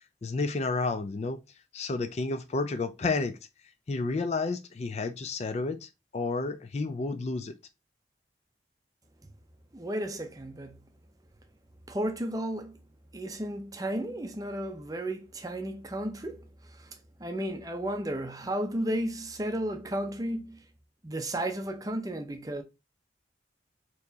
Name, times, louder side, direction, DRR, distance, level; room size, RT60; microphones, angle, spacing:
voice 1, 0.2-1.4 1.7-3.4 3.9-7.5, left 3 dB, 35° left, 0.4 m, -31 dB
voice 2, 9.7-10.8 11.9-12.8 13.1-16.4 16.8-20.6 21.0-22.6, right 1 dB, 20° right, 0.6 m, -33 dB
4.4 x 3.0 x 2.7 m
head